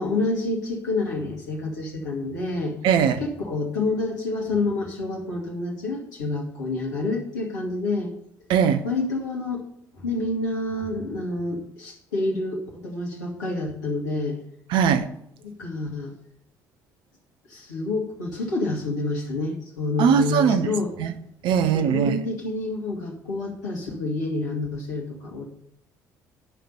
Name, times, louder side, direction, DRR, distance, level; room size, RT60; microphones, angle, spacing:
voice 1, 0.0-2.7 3.2-8.1 8.8-9.6 9.9-14.4 15.6-16.1 17.5-20.9 21.7-25.4, left 2 dB, 75° left, -2 dB, 2.2 m, -28 dB
voice 2, 2.8-3.2 8.5-8.8 14.7-15.1 20.0-20.7 21.0-21.1 21.4-22.2, right 7 dB, 60° right, 10 dB, 0.9 m, -20 dB
11.5 x 5.9 x 6.8 m, 0.74 s
figure-of-eight pair, 50°, 9 cm